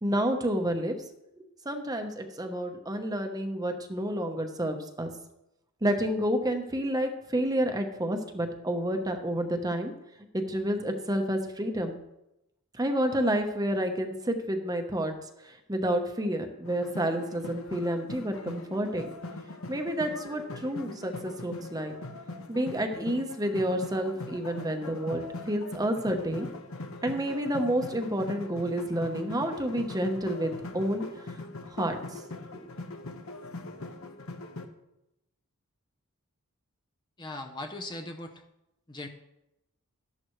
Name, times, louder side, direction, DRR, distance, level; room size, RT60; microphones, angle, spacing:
voice 1, 0.0-1.0 1.6-5.1 5.8-9.9 10.3-12.0 12.8-15.1 15.4-19.1 19.7-21.9 22.5-26.5 27.0-31.0 31.7-32.2 32.5-32.6, right 1 dB, 15° right, 5 dB, 0.9 m, -29 dB
sound 1, 16.6-34.7, left 2 dB, 65° left, 1.1 m, -41 dB
voice 2, 37.2-38.4 38.9-39.1, left 2 dB, 20° left, 4 dB, 0.7 m, -39 dB
13.0 x 11.0 x 3.2 m, 0.90 s
head